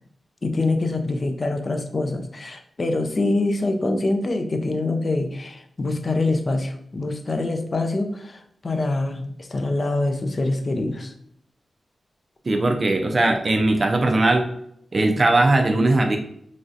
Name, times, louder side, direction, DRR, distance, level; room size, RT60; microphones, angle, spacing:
voice 1, 0.4-11.1, left 2 dB, 40° left, 5 dB, 0.4 m, -25 dB
voice 2, 12.5-14.4 14.9-16.2, right 2 dB, 40° right, 4 dB, 0.3 m, -19 dB
3.1 x 2.6 x 2.4 m, 0.69 s
wide cardioid pair, 120°, 0 cm